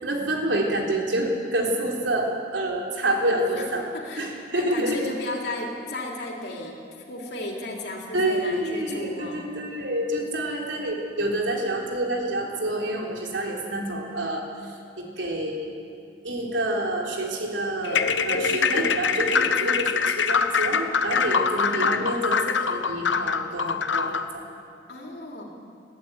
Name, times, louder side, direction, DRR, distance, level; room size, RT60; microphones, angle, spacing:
voice 1, 0.0-3.9 4.2-5.0 8.1-15.7 16.2-24.4, right 1 dB, 75° right, 0 dB, 3.7 m, -28 dB
voice 2, 3.3-3.7 3.9-9.4 18.3-18.8 19.3-19.7 21.6-22.2 24.9-25.4, left 2 dB, 60° left, 0 dB, 3.2 m, -35 dB
sound 1, 17.8-24.3, left 5 dB, 80° left, 0.9 m, -24 dB
21.5 x 14.5 x 9.6 m, 2.4 s
head